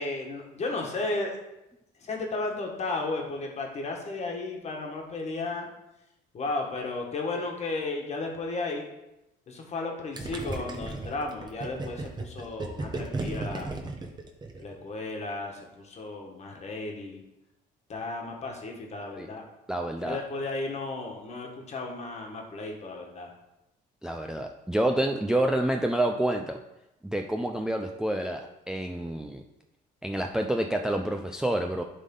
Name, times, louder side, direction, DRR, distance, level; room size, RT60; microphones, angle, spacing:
voice 1, 0.0-1.4 2.0-5.7 6.3-8.9 9.5-13.7 14.6-17.2 17.9-19.4 20.0-23.3, left 3 dB, 40° left, 1 dB, 1.5 m, -34 dB
Gurgling, 10.2-14.8, right 2 dB, 25° right, 1.1 m, -35 dB
voice 2, 19.7-20.2 24.0-26.6 27.0-28.4 28.7-29.4 30.0-31.8, right 1 dB, 5° right, 4 dB, 0.4 m, -28 dB
11.0 x 3.7 x 3.8 m, 0.91 s
cardioid pair, 110°, 17 cm